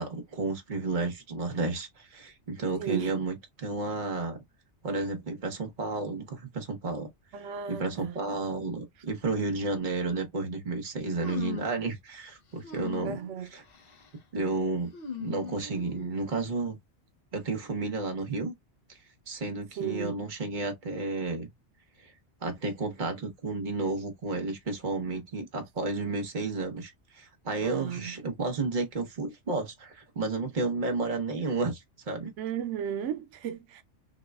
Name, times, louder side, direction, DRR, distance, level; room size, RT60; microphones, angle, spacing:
voice 1, 0.0-4.4 4.8-7.1 7.7-13.2 13.5-13.6 14.3-14.9 15.2-16.8 17.3-18.5 18.9-19.0 19.3-21.5 22.0-22.1 22.4-32.3, right 3 dB, 45° right, 1.1 m, -32 dB
voice 2, 2.8-3.2 7.3-8.2 13.0-13.5 19.8-20.2 27.6-28.1 32.4-33.8, right 9 dB, 90° right, 1.0 m, -34 dB
sound 1, 11.2-11.8 12.6-13.3 13.7-14.1 14.9-16.1, left 7 dB, 55° left, 0.9 m, -39 dB
6.1 x 2.3 x 2.3 m
omnidirectional pair, 1.2 m